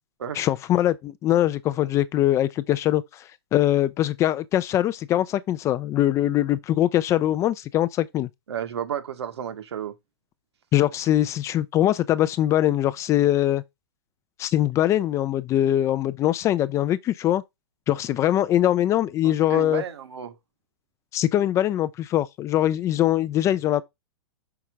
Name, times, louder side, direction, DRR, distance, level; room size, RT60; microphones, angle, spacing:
voice 1, 0.3-3.2 3.5-8.3 10.7-13.6 14.4-17.4 17.9-19.8 21.1-23.8, left 12 dB, 20° left, 0.4 m, -22 dB
voice 2, 8.5-9.9 19.2-20.4, right 9 dB, 75° right, 1.5 m, -32 dB
5.8 x 3.8 x 4.6 m
hypercardioid pair, 130°, 14 cm